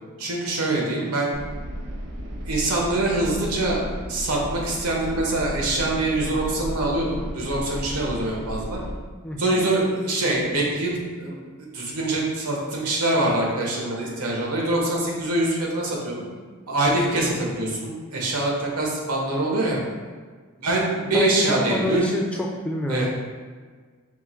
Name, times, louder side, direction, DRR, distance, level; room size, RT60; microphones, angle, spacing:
voice 1, 0.2-1.3 2.4-3.8 4.1-8.8 9.4-11.4 11.7-16.2 16.7-19.8 20.6-22.1 22.9-23.1, right 2 dB, 90° right, -2 dB, 1.0 m, -24 dB
sound 1, 1.3-8.9, equal, 55° right, 0.6 m, -34 dB
voice 2, 9.2-9.6 21.1-23.1, equal, 5° left, -1 dB, 0.3 m, -27 dB
4.5 x 2.2 x 4.3 m, 1.5 s
head